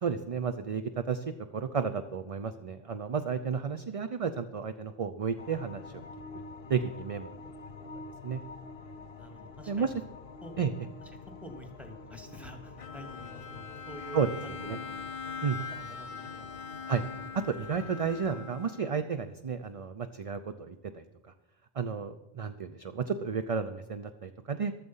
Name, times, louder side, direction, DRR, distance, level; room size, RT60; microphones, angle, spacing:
voice 1, 0.0-1.2 1.5-6.0 6.7-7.4 8.2-8.4 9.7-9.9 10.6-10.7 14.1-14.3 14.6-14.8 15.4-15.6 16.9-17.0 17.3-21.0 21.7-24.7, right 6 dB, 40° right, 9 dB, 0.6 m, -32 dB
sound 1, 5.4-18.4, left 4 dB, 60° left, 1.0 m, -47 dB
voice 2, 9.2-9.9 10.4-10.6 11.4-15.0 15.7-16.9, equal, ahead, 5 dB, 2.0 m, -48 dB
Bowed string instrument, 12.8-19.2, left 5 dB, 40° left, 0.6 m, -42 dB
14.5 x 13.0 x 5.5 m, 0.99 s
omnidirectional pair, 1.1 m